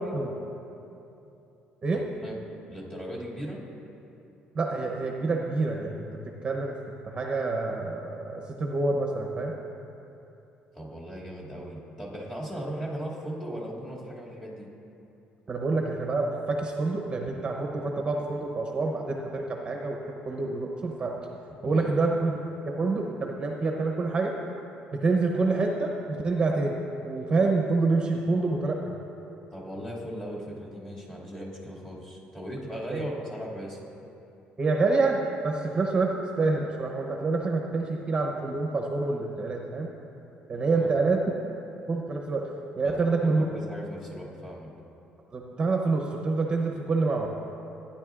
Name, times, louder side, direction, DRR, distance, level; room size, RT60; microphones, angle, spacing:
voice 1, 1.9-2.4 2.7-3.6 10.7-14.7 21.7-21.9 29.5-33.8 40.7-40.9 42.8-44.7, equal, 20° left, -6 dB, 2.3 m, -38 dB
voice 2, 4.5-6.8 7.1-9.5 15.5-20.0 20.3-21.2 21.6-22.4 22.8-24.3 24.9-26.8 27.0-29.0 32.9-33.0 34.6-39.9 40.5-41.2 41.9-42.4 42.8-43.5 45.3-47.3, right 3 dB, 30° right, 1 dB, 0.8 m, -27 dB
15.0 x 9.9 x 2.4 m, 2.8 s
cardioid pair, 125°, 3 cm